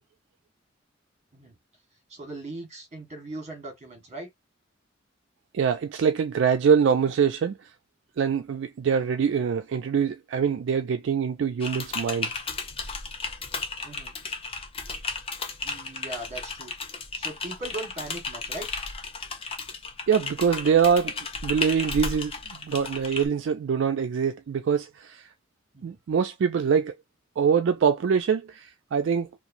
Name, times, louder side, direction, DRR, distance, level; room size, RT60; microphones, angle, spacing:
voice 1, 2.1-4.3 13.8-14.1 15.6-16.7 17.1-18.7 25.7-26.0, right 2 dB, 35° right, 1.4 m, -39 dB
voice 2, 5.5-7.7 8.2-12.3 20.1-21.2 21.4-25.3 25.8-26.9 27.4-29.3, right 7 dB, 70° right, 0.3 m, -24 dB
Typing, 11.6-23.3, left 4 dB, 30° left, 0.6 m, -34 dB
3.0 x 2.5 x 2.5 m
head